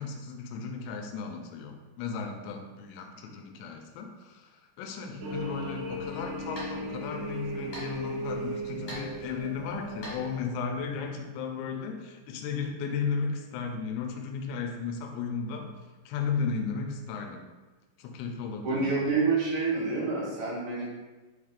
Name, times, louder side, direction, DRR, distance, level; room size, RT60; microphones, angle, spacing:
voice 1, 0.0-15.7 16.1-17.4 18.0-19.0, left 5 dB, 80° left, 3 dB, 2.5 m, -35 dB
sound 1, 5.2-10.4, right 1 dB, 85° right, 1.4 m, -37 dB
sound 2, 6.3-11.1, left 1 dB, 60° left, 1.5 m, -47 dB
voice 2, 18.6-20.9, right 4 dB, 60° right, -7 dB, 2.0 m, -27 dB
6.5 x 3.3 x 2.5 m, 1.2 s
omnidirectional pair, 4.7 m